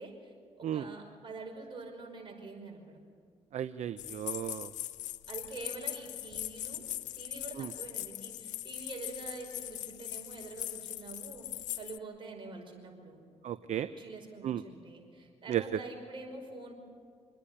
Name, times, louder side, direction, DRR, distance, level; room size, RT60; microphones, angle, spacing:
voice 1, 0.0-3.0 5.3-13.2 14.0-16.7, right 3 dB, 40° right, 1 dB, 5.5 m, -46 dB
voice 2, 3.5-4.7 7.6-7.7 13.4-13.9 14.4-14.6 15.5-15.6, right 11 dB, 65° right, 13 dB, 0.6 m, -34 dB
sound 1, 4.0-12.0, left 13 dB, 80° left, 0.5 m, -41 dB
26.5 x 10.0 x 10.0 m, 2.1 s
cardioid pair, 70°, 13 cm